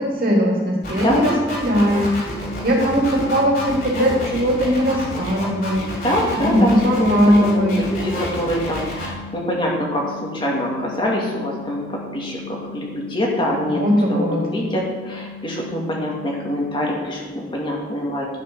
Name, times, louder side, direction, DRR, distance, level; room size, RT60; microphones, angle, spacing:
voice 1, 0.0-5.9 6.3-7.8 13.7-14.4, equal, 50° right, -2 dB, 2.8 m, -19 dB
sound 1, 0.8-9.1, left 1 dB, 50° left, 3.3 m, -30 dB
sound 2, 2.3-17.0, left 4 dB, 70° left, 0.5 m, -38 dB
voice 2, 6.0-13.8 14.2-18.3, equal, 30° left, -2 dB, 2.1 m, -24 dB
11.5 x 6.7 x 6.1 m, 1.3 s
head